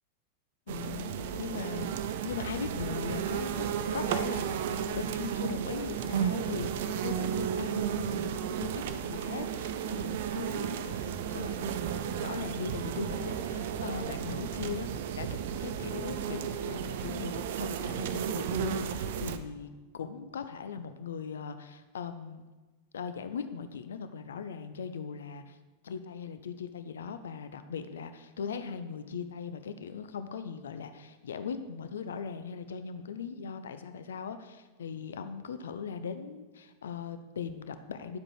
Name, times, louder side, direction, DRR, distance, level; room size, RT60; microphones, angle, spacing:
voice 1, 0.7-3.7 3.9-14.9 15.2-15.3 15.6-19.7 19.9-22.4 22.9-25.6 25.8-38.2, left 6 dB, 65° left, 10 dB, 0.6 m, -39 dB
sound 1, 0.7-19.4, right 8 dB, 55° right, 0.6 m, -33 dB
10.5 x 7.6 x 4.7 m, 1.2 s
figure-of-eight pair, 90°, 0 cm